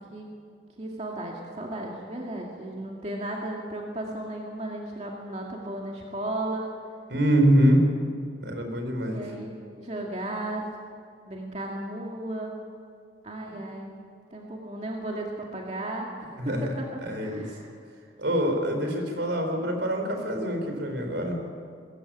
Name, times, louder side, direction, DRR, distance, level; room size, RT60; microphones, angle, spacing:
voice 1, 0.7-6.7 9.0-10.7 11.3-12.5 13.2-13.9 14.3-16.9 17.2-17.8, right 1 dB, 35° right, -1 dB, 2.3 m, -35 dB
voice 2, 7.1-7.8 8.4-9.2 13.5-13.6 16.4-16.7 17.0-17.5 18.2-21.4, equal, 70° right, 4 dB, 4.2 m, -24 dB
22.0 x 15.5 x 8.9 m, 2.2 s
head